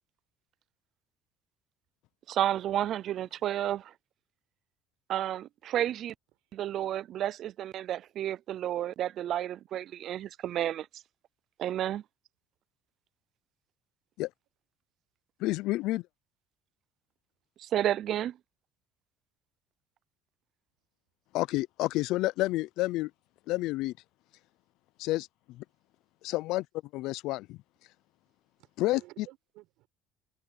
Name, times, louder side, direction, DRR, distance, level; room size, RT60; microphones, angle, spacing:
voice 1, 2.3-3.9 5.1-6.1 6.5-11.0 11.6-12.0 17.6-18.4, right 11 dB, 40° right, 0.3 m, -31 dB
voice 2, 15.4-16.0 21.3-23.1 23.5-23.9 25.0-25.6 26.2-26.6 26.9-27.6 28.8-29.0, left 18 dB, 60° left, 0.4 m, -29 dB
voice 3, 28.6-29.9, right 19 dB, 65° right, 4.9 m, -55 dB
cardioid pair, 180°, 0 cm